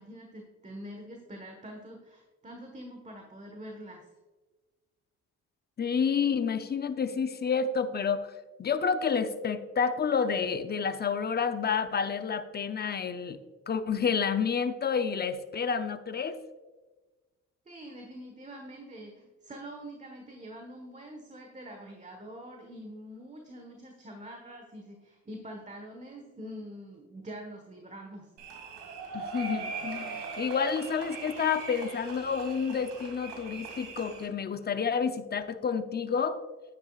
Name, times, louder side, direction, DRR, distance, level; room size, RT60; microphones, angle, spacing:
voice 1, 0.0-4.1 17.6-28.3, equal, 25° right, 2 dB, 1.4 m, -45 dB
voice 2, 5.8-8.3 8.6-13.4 13.7-16.4 29.1-36.4, left 6 dB, 35° left, 10 dB, 0.7 m, -29 dB
sound 1, 28.4-34.3, right 4 dB, 90° right, 2.3 m, -40 dB
10.5 x 9.5 x 2.4 m, 1.2 s
cardioid pair, 90°, 30 cm